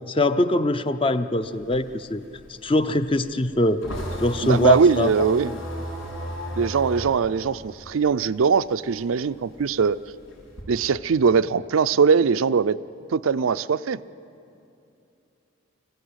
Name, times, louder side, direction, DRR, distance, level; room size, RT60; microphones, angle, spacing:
voice 1, 0.0-2.2 2.5-3.9 4.2-5.6, left 2 dB, 25° left, 11 dB, 0.6 m, -23 dB
sound 1, 1.4-8.5 8.9-10.6, equal, 85° left, 6.6 m, -34 dB
voice 2, 4.4-5.5 6.6-10.0 10.7-12.8 13.1-14.0, right 5 dB, 90° right, 14 dB, 0.5 m, -21 dB
25.5 x 15.5 x 8.1 m, 2.7 s
head